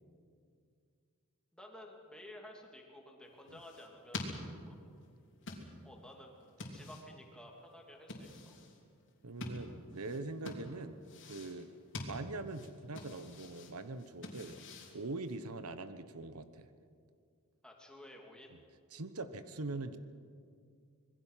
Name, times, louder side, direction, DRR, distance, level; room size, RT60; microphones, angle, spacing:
voice 1, 1.5-4.3 4.7-4.8 5.8-6.3 6.7-8.6 17.6-18.5, left 1 dB, 5° left, 0 dB, 2.8 m, -53 dB
sound 1, 3.2-15.6, left 2 dB, 60° left, 3.3 m, -48 dB
voice 2, 9.2-11.0 11.2-11.7 12.0-14.6 14.9-16.7 18.9-20.0, right 3 dB, 85° right, 11 dB, 1.1 m, -42 dB
26.0 x 21.0 x 5.7 m, 2.2 s
head